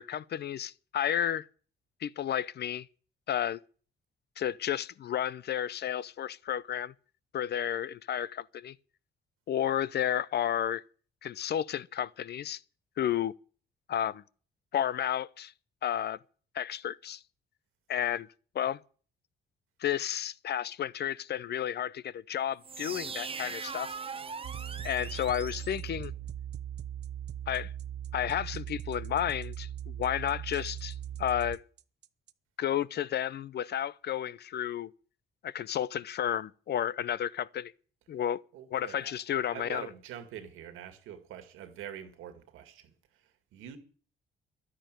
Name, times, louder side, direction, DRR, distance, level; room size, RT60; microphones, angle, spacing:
voice 1, 0.0-1.5 2.0-2.9 3.3-3.6 4.4-6.9 7.3-8.7 9.5-10.8 11.2-12.6 13.0-13.3 13.9-14.2 14.7-15.5 15.8-16.2 16.5-17.2 17.9-18.3 18.5-18.8 19.8-23.9 24.8-26.1 27.5-27.7 28.1-31.6 32.6-34.9 35.4-37.7 38.1-38.4 38.7-39.9, left 10 dB, 55° left, 0.6 m, -32 dB
sound 1, 22.6-26.4, right 5 dB, 30° right, 0.8 m, -41 dB
sound 2, 24.4-32.3, right 10 dB, 60° right, 0.8 m, -39 dB
voice 2, 38.5-39.1 39.4-42.9 43.2-43.8, right 10 dB, 90° right, 2.1 m, -45 dB
11.5 x 9.8 x 9.1 m
cardioid pair, 90°, 20 cm